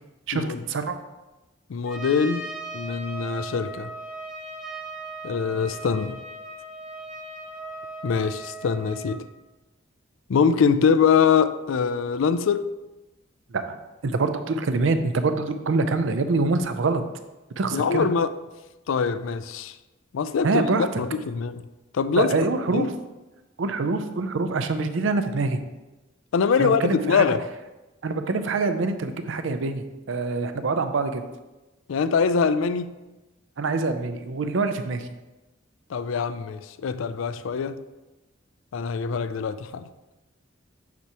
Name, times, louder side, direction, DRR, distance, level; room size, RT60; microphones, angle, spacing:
voice 1, 0.3-1.0 13.5-13.8 14.0-17.0 17.6-18.1 20.4-20.9 22.2-22.9 23.6-25.6 26.6-27.2 28.0-31.2 33.6-35.1, right 3 dB, 75° right, 9 dB, 0.5 m, -25 dB
voice 2, 1.7-2.5 2.7-3.9 5.2-6.2 8.0-9.2 10.3-12.7 17.7-18.3 18.9-19.7 20.1-20.6 21.0-21.6 21.9-22.3 22.7-22.9 26.3-27.4 31.9-32.9 35.9-37.8 38.7-39.9, left 6 dB, 80° left, 12 dB, 0.4 m, -23 dB
Trumpet, 1.9-9.2, right 2 dB, 5° right, 0.9 m, -38 dB
8.3 x 4.7 x 2.9 m, 1.1 s
head